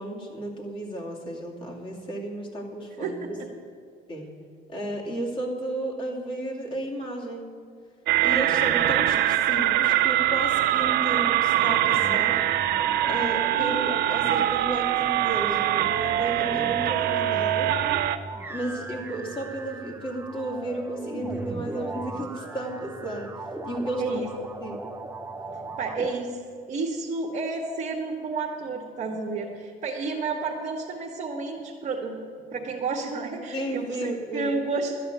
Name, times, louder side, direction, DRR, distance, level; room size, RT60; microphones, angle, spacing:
voice 1, 0.0-3.4 4.1-4.3 4.7-7.4 8.2-12.4 13.1-17.7 18.5-24.2 24.6-24.8 33.5-34.5, right 1 dB, 30° left, -2 dB, 2.6 m, -33 dB
voice 2, 3.0-3.5 24.0-24.3 25.5-26.4 26.7-32.2 32.5-34.9, right 4 dB, 45° right, -2 dB, 1.4 m, -31 dB
sound 1, 8.1-18.2, right 13 dB, 75° right, 0.6 m, -23 dB
sound 2, 12.0-26.1, right 2 dB, 10° right, 0.8 m, -39 dB
12.5 x 6.2 x 9.2 m, 2.1 s
cardioid pair, 110°, 17 cm